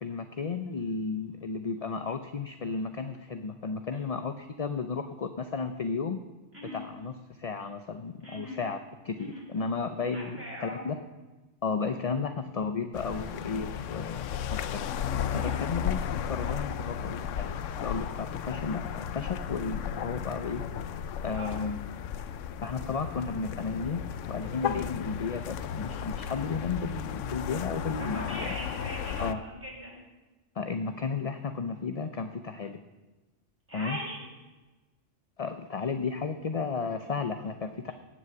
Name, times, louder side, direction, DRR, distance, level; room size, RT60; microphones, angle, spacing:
voice 1, 0.0-6.2 6.7-8.8 9.0-11.0 11.6-14.8 15.3-16.0 16.3-20.6 21.2-21.9 22.6-28.5 29.2-29.4 30.6-32.8 33.7-34.0 35.4-37.9, left 5 dB, 40° left, 8 dB, 0.6 m, -33 dB
voice 2, 8.2-8.6 9.2-9.4 10.1-10.8 15.3-15.6 21.3-21.5 27.9-30.0 33.7-34.3 37.9-38.0, equal, 10° right, -5 dB, 6.1 m, -40 dB
sound 1, 12.9-29.3, left 8 dB, 90° left, 1.0 m, -34 dB
18.0 x 6.3 x 7.9 m, 1.1 s
omnidirectional pair, 1.2 m